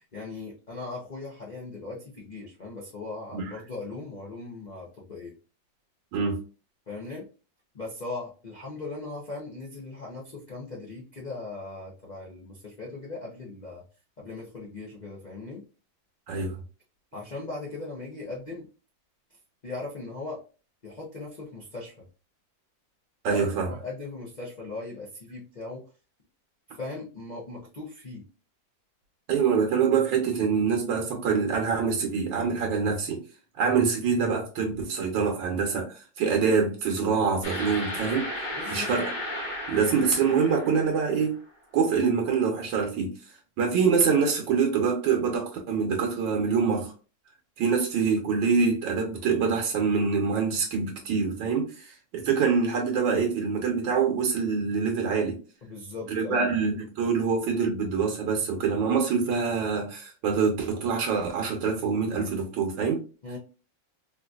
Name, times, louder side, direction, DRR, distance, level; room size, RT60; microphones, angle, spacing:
voice 1, 0.0-5.3 6.9-7.3 7.7-13.8 14.2-15.6 17.1-18.7 19.6-20.4 20.8-22.1 23.3-25.8 26.7-28.2 38.6-38.9 55.6-56.5 63.2-63.4, left 3 dB, 65° left, 0.4 m, -39 dB
voice 2, 23.2-23.7 29.3-33.2 33.6-38.3 38.7-39.1 39.7-41.4 41.7-43.1 43.6-46.9 47.6-55.4 56.1-63.0, right 5 dB, 75° right, 1.5 m, -25 dB
sound 1, 37.4-41.3, left 1 dB, 30° left, 0.9 m, -35 dB
3.8 x 2.6 x 2.3 m
omnidirectional pair, 2.1 m